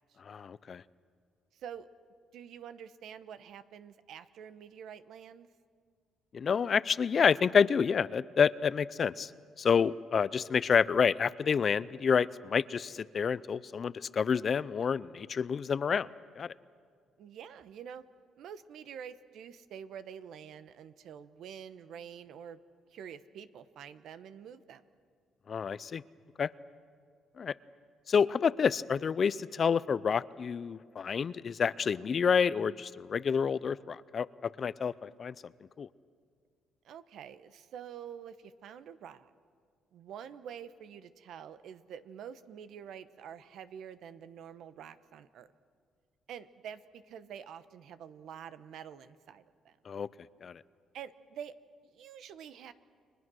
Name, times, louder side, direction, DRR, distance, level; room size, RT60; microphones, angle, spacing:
voice 1, 0.3-0.8 6.3-9.3 9.6-16.1 16.4-16.5 25.5-26.0 26.4-26.5 27.4-27.5 28.1-35.3 35.8-35.9 49.9-50.1 50.4-50.6, left 6 dB, 45° left, 18 dB, 0.5 m, -28 dB
voice 2, 1.5-1.9 2.3-5.5 9.7-10.0 17.2-18.0 18.4-22.6 22.9-24.8 36.8-39.3 39.9-45.5 46.3-49.8 50.9-51.5 51.9-52.7, right 8 dB, 70° right, 13 dB, 1.0 m, -47 dB
30.0 x 22.5 x 6.3 m, 2.1 s
cardioid pair, 105°, 0 cm